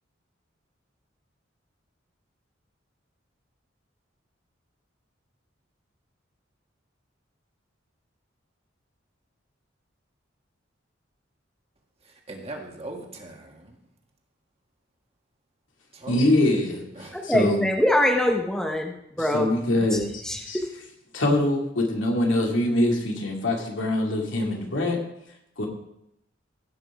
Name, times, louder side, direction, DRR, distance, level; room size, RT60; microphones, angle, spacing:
voice 1, 12.0-13.8 15.9-16.3 16.9-17.3, right 2 dB, 35° right, 1.8 m, -40 dB
voice 2, 16.1-16.8 17.2-17.6 19.3-20.6 21.1-25.0 25.6-25.7, left 1 dB, 85° left, 2.3 m, -23 dB
voice 3, 17.1-19.5 19.9-20.0 20.2-20.6, left 1 dB, 5° left, 0.9 m, -24 dB
16.0 x 6.0 x 4.8 m
head